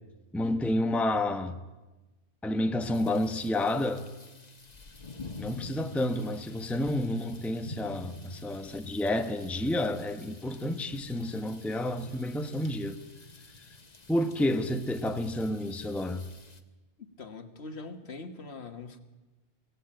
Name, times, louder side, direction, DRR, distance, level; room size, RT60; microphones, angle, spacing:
voice 1, 0.3-1.6 2.4-4.1 5.4-13.0 14.1-16.2, left 1 dB, ahead, 0.9 m, -30 dB
sound 1, 2.9-16.6, left 2 dB, 35° left, 1.5 m, -48 dB
voice 2, 17.2-19.0, left 3 dB, 65° left, 1.8 m, -42 dB
24.5 x 17.5 x 8.8 m
omnidirectional pair, 1.2 m